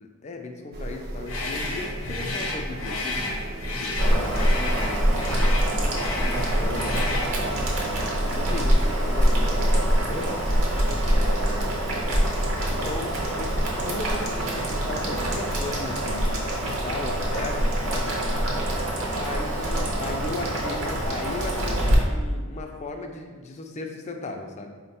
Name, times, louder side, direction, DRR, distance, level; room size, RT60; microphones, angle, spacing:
voice 1, 0.0-3.0 3.8-7.6 8.2-10.4 11.0-11.9 12.7-13.5 13.8-18.2 19.2-24.7, left 2 dB, 30° left, 4 dB, 0.4 m, -36 dB
sound 1, 0.7-15.8, right 1 dB, 50° right, 0.5 m, -36 dB
sound 2, 1.2-7.4, left 2 dB, 70° left, 0.6 m, -32 dB
Boiling, 4.0-21.9, right 1 dB, 70° right, 0.9 m, -25 dB
4.1 x 2.2 x 4.1 m, 1.4 s
head